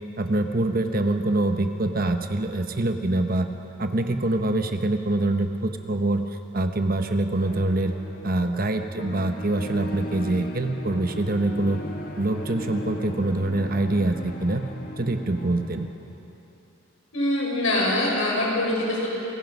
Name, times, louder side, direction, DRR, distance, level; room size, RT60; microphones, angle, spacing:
voice 1, 0.2-3.5 3.8-6.3 6.5-7.9 8.2-11.8 12.2-14.7 15.0-15.9, right 2 dB, 45° right, 6 dB, 1.0 m, -25 dB
sound 1, 7.4-15.9, left 1 dB, 40° left, 1.8 m, -37 dB
voice 2, 17.1-19.1, left 1 dB, 80° left, -3 dB, 5.8 m, -24 dB
27.0 x 18.0 x 5.4 m, 3.0 s
head